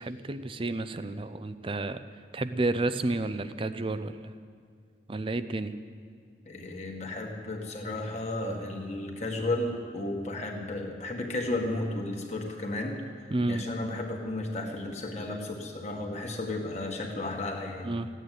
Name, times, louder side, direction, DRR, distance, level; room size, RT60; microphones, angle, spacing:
voice 1, 0.0-2.0 2.3-4.2 5.1-5.8 13.3-13.7 17.8-18.1, right 2 dB, 30° right, 12 dB, 0.5 m, -31 dB
voice 2, 6.5-13.0 13.5-17.9, left 2 dB, 40° left, 1 dB, 1.8 m, -33 dB
15.5 x 9.1 x 9.4 m, 2.1 s
head